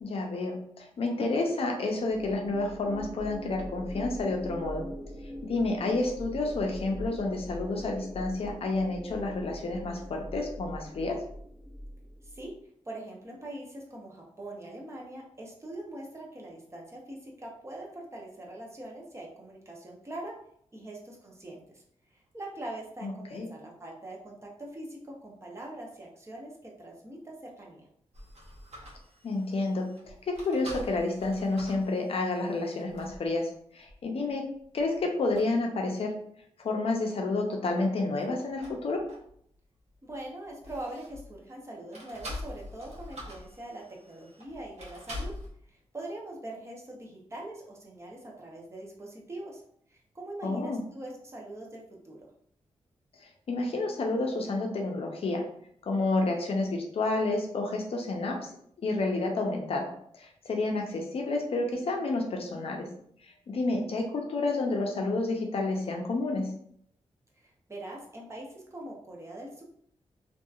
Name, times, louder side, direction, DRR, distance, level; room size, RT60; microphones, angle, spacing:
voice 1, 0.0-4.9 5.5-11.2 23.0-23.5 29.2-29.9 30.2-34.5 34.7-36.1 36.6-39.0 50.4-50.8 53.2-55.4 55.9-58.5 58.8-62.9 63.5-66.5, left 2 dB, 55° left, 1 dB, 0.5 m, -30 dB
sound 1, 2.1-12.5, equal, 20° left, 0.7 m, -42 dB
voice 2, 12.9-20.3 20.7-21.8 22.1-27.8 40.0-45.3 45.7-49.6 49.9-52.2 67.4-69.6, right 1 dB, 25° right, -1 dB, 0.6 m, -43 dB
sound 2, 28.1-33.3 33.9-34.0 34.6-35.0 35.3-35.5 38.1-39.6 39.9-41.4 41.9-45.5, left 1 dB, 70° right, 0.8 m, -45 dB
2.7 x 2.3 x 2.3 m, 0.66 s
wide cardioid pair, 95°, 11 cm